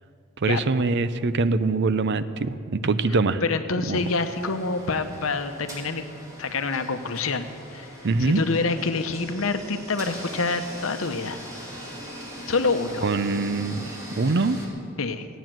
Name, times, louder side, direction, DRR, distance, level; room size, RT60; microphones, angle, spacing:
voice 1, 0.4-3.4 3.9-4.0 8.0-8.4 13.0-13.9 14.2-14.6, right 3 dB, 55° right, 13 dB, 0.6 m, -23 dB
voice 2, 3.4-6.1 6.4-7.9 8.2-11.4 12.5-13.1 15.0-15.3, left 3 dB, 70° left, 8 dB, 0.9 m, -27 dB
sound 1, 3.9-14.7, equal, 15° right, 2.4 m, -41 dB
14.5 x 9.2 x 7.6 m, 2.5 s
head